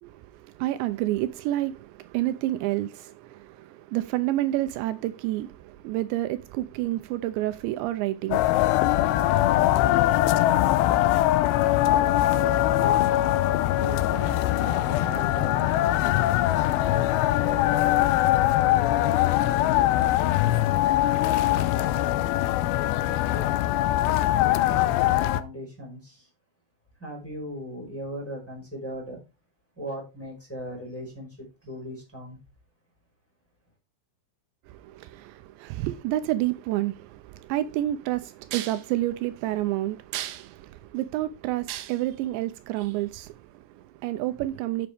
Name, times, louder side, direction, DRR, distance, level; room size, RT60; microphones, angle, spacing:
voice 1, 0.0-9.7 34.7-44.9, right 15 dB, 85° right, 2.8 m, -29 dB
sound 1, 8.3-25.4, left 14 dB, 80° left, 2.6 m, -22 dB
voice 2, 10.5-22.8 23.0-24.0 24.7-26.3 27.0-29.2 29.7-32.4, equal, 5° left, 4.5 m, -40 dB
11.5 x 7.1 x 3.5 m
omnidirectional pair, 5.2 m